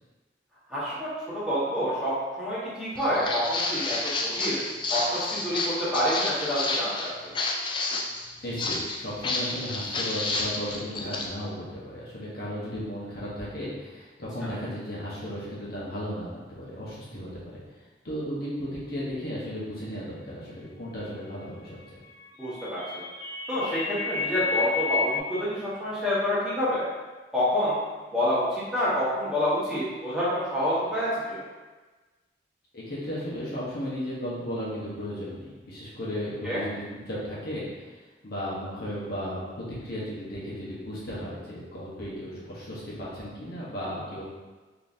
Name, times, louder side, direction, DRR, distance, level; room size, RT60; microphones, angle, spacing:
voice 1, 0.7-1.1 1.3-4.6 4.9-7.3 22.4-23.0 23.5-26.9 27.3-27.7 28.1-31.4 36.4-36.6, equal, 5° right, -12 dB, 1.2 m, -28 dB
Walk footsteps, 3.0-11.3, left 3 dB, 25° left, 0.3 m, -30 dB
voice 2, 8.4-17.5 18.0-22.0 32.7-44.2, equal, 60° left, -8 dB, 1.0 m, -35 dB
sound 1, 22.0-25.2, left 5 dB, 85° left, 0.8 m, -30 dB
3.8 x 3.0 x 2.6 m, 1.3 s
head